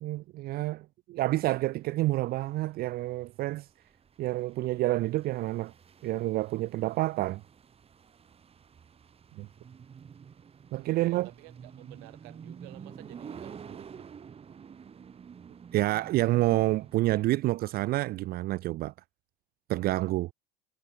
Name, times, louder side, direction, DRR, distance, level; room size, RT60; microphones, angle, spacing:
voice 1, 0.0-3.7 4.2-5.7 6.0-7.4 9.4-9.5 10.7-11.3 15.7-18.9 19.7-20.3, right 17 dB, 50° right, 0.5 m, -28 dB
sound 1, 1.3-17.2, right 7 dB, 30° right, 2.2 m, -50 dB
voice 2, 10.8-14.1, right 34 dB, 70° right, 1.2 m, -52 dB
supercardioid pair, 95°, 20 cm